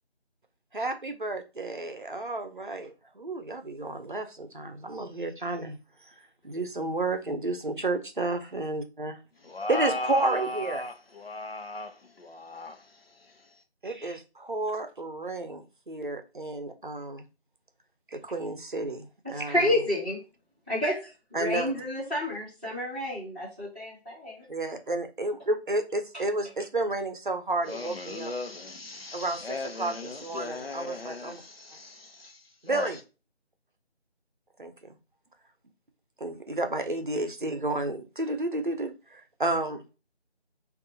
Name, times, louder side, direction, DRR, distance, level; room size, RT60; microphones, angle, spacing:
voice 1, 0.7-5.8 6.4-9.2 9.7-10.8 13.8-17.3 18.1-19.8 21.3-21.8 24.5-28.3 29.1-29.4 29.8-31.4 32.6-33.0 34.6-34.7 36.2-39.8, right 2 dB, 50° right, 0.7 m, -31 dB
voice 2, 9.4-13.6 27.7-32.9, left 2 dB, 65° left, 0.9 m, -37 dB
voice 3, 19.5-20.2 20.7-21.0 21.3-24.4, left 1 dB, 10° left, 1.6 m, -29 dB
6.3 x 2.6 x 2.7 m
figure-of-eight pair, 175°, 33 cm